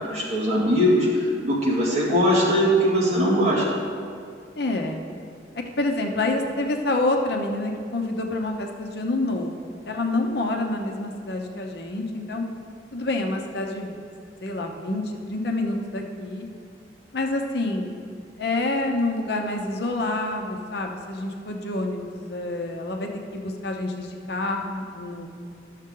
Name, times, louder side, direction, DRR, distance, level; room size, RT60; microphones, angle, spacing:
voice 1, 0.0-3.6, equal, 35° right, -7 dB, 2.3 m, -21 dB
voice 2, 4.6-5.0 5.8-9.5 9.9-12.4 12.9-14.0 14.4-16.5 17.1-17.9 18.4-25.3, left 2 dB, 60° left, 2 dB, 0.8 m, -27 dB
12.0 x 6.5 x 3.8 m, 2.3 s
head